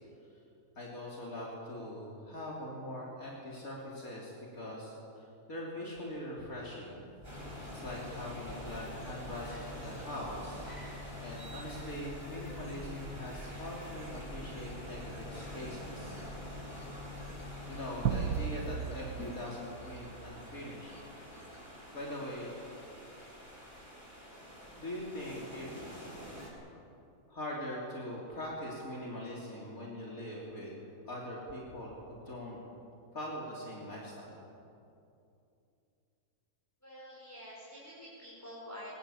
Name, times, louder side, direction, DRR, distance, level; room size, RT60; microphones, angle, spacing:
voice 1, 0.8-7.0 7.7-10.6 10.9-16.7 17.6-21.0 21.5-21.6 21.9-22.6 24.8-25.7 27.3-32.6 33.1-34.3, left 1 dB, 65° left, -4 dB, 3.8 m, -42 dB
sound 1, 6.9-18.7, left 2 dB, 35° left, 7.2 m, -47 dB
sound 2, 7.2-26.5, equal, 10° right, 7.8 m, -48 dB
sound 3, 18.0-20.6, right 8 dB, 75° right, 1.3 m, -35 dB
voice 2, 36.8-38.9, equal, 10° left, -8 dB, 5.7 m, -48 dB
23.0 x 19.0 x 8.6 m, 2.7 s
omnidirectional pair, 1.6 m